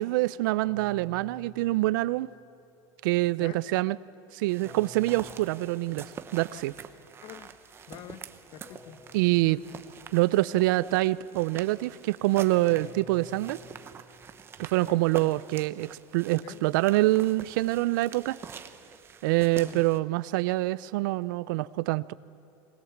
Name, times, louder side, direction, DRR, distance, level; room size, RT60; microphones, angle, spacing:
voice 1, 0.0-2.3 3.0-4.0 4.3-6.7 9.1-9.6 10.1-13.6 14.6-18.4 19.2-22.1, right 19 dB, 80° right, 19 dB, 0.5 m, -25 dB
sound 1, 0.6-2.7 4.6-6.5 8.6-10.5 12.6-14.8, equal, 20° left, 1.7 m, -52 dB
voice 2, 3.3-3.8 6.5-6.7 7.2-7.6 7.9-9.0 9.4-9.7 14.8-15.3 16.4-16.7 19.5-19.9, left 10 dB, 50° left, 13 dB, 1.0 m, -46 dB
sound 2, 4.5-20.0, right 7 dB, 25° right, 0.9 m, -46 dB
21.5 x 20.0 x 7.3 m, 2.8 s
supercardioid pair, 145°, 11 cm